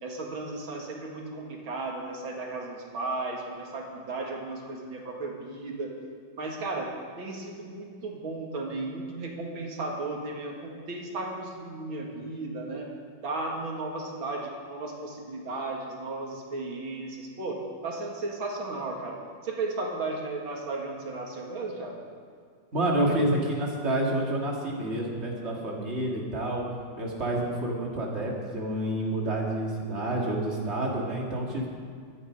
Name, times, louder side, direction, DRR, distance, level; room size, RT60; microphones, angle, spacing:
voice 1, 0.0-5.9 6.4-6.9 7.2-12.9 13.2-19.2 19.4-22.0, right 2 dB, 85° right, 0 dB, 2.8 m, -35 dB
voice 2, 22.7-26.6 27.0-31.7, right 1 dB, 35° right, -3 dB, 2.9 m, -28 dB
24.0 x 10.0 x 5.4 m, 2.2 s
omnidirectional pair, 2.1 m